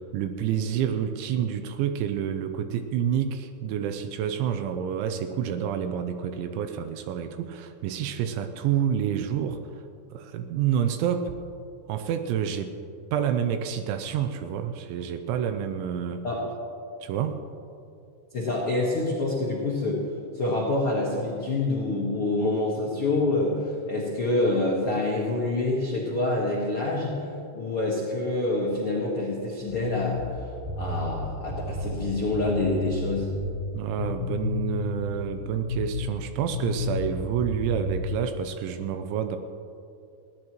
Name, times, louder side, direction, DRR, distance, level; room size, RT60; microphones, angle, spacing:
voice 1, 0.0-9.6 10.1-11.3 11.9-12.7 13.1-16.3 17.0-17.4 33.7-39.4, right 8 dB, 85° right, 8 dB, 2.9 m, -28 dB
voice 2, 18.3-20.0 20.3-30.5 30.8-33.3, left 2 dB, 75° left, -4 dB, 1.2 m, -27 dB
sound 1, 29.7-33.6 34.0-36.2 36.5-38.0, left 3 dB, 55° left, 2.6 m, -32 dB
20.5 x 16.0 x 3.1 m, 2.5 s
omnidirectional pair, 5.7 m